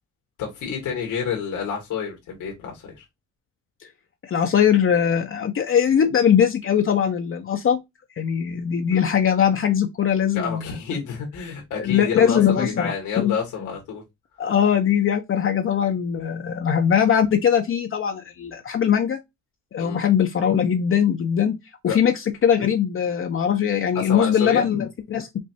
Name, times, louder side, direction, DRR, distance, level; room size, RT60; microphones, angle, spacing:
voice 1, 0.4-3.0 8.9-9.1 10.3-14.0 19.8-20.0 21.9-22.0 23.9-24.7, left 6 dB, 85° left, 1.7 m, -29 dB
voice 2, 4.3-7.8 8.2-10.6 11.8-13.3 14.4-19.2 19.7-21.6 21.8-22.1 22.4-25.4, left 8 dB, 45° left, 0.7 m, -21 dB
5.3 x 2.6 x 2.7 m
cardioid pair, 90°, 30 cm